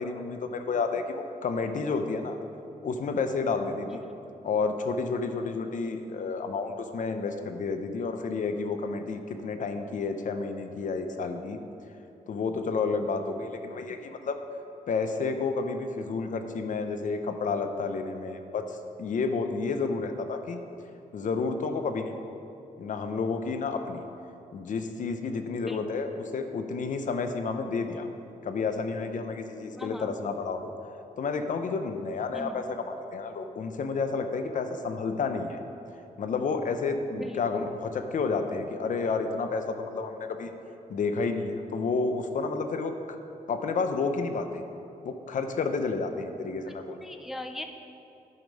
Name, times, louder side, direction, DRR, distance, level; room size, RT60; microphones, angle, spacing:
voice 1, 0.0-2.4 2.8-4.0 4.4-11.6 12.3-14.4 14.9-20.6 21.1-22.2 22.8-24.0 24.5-28.1 28.4-30.7 31.2-35.6 36.2-40.5 40.9-43.2 43.5-44.6 45.0-47.0, left 4 dB, 60° left, 7 dB, 0.6 m, -30 dB
voice 2, 29.8-30.1 32.3-32.6 37.1-37.4 47.0-47.7, left 1 dB, ahead, 6 dB, 0.3 m, -38 dB
9.5 x 5.1 x 5.3 m, 2.7 s
wide cardioid pair, 125°, 15 cm